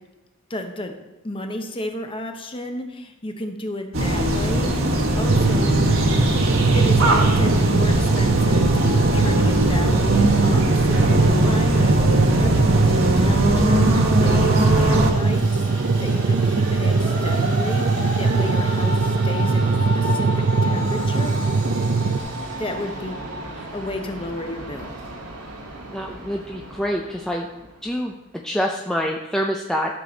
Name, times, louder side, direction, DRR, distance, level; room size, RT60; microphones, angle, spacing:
voice 1, 0.5-0.9 1.2-6.0 6.7-20.3 20.6-21.4 22.6-23.2 23.5-24.9, left 1 dB, 25° left, 5 dB, 0.8 m, -33 dB
sound 1, 3.9-15.1, right 1 dB, 65° right, 1.5 m, -20 dB
sound 2, 5.3-22.2, right 4 dB, 50° right, 0.5 m, -21 dB
Train, 14.4-27.9, right 1 dB, 85° right, 1.9 m, -32 dB
voice 2, 25.9-27.5 27.8-28.1 28.4-30.0, equal, 5° left, 0 dB, 0.4 m, -26 dB
12.5 x 6.7 x 4.0 m, 1.0 s
head